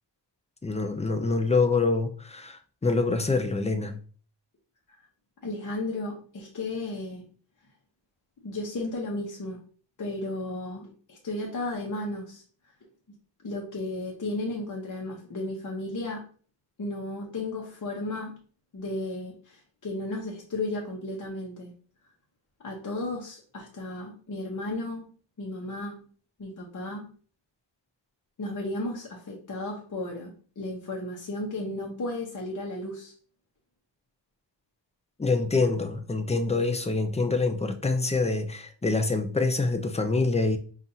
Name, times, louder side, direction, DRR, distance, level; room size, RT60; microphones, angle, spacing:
voice 1, 0.6-4.0 35.2-40.6, left 3 dB, 15° left, 0.3 m, -26 dB
voice 2, 5.4-7.2 8.4-9.6 10.0-12.4 13.4-16.3 16.8-18.4 18.7-21.7 22.6-25.1 25.4-26.1 26.4-27.1 28.4-33.1, left 2 dB, 45° left, 0.8 m, -34 dB
5.5 x 2.4 x 2.6 m
wide cardioid pair, 130°, 44 cm